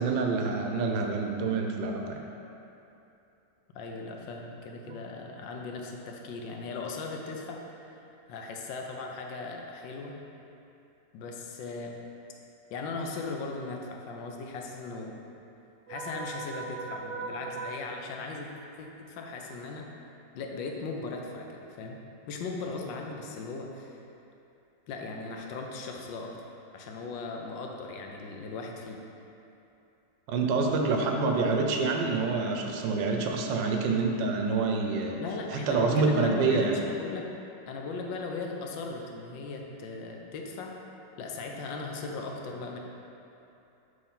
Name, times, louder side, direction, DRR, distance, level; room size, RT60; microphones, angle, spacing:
voice 1, 0.0-2.2 4.9-5.0 15.9-17.8 30.3-35.2 35.5-36.8, right 4 dB, 85° right, 2 dB, 1.3 m, -28 dB
voice 2, 3.7-10.2 11.1-12.0 12.7-15.2 15.9-18.5 18.8-19.9 20.3-22.0 22.3-24.1 24.9-26.4 26.7-29.0 35.2-37.3 37.7-40.8 41.2-42.8, left 3 dB, 85° left, 1 dB, 1.4 m, -38 dB
6.4 x 3.2 x 5.5 m, 2.8 s
omnidirectional pair, 2.0 m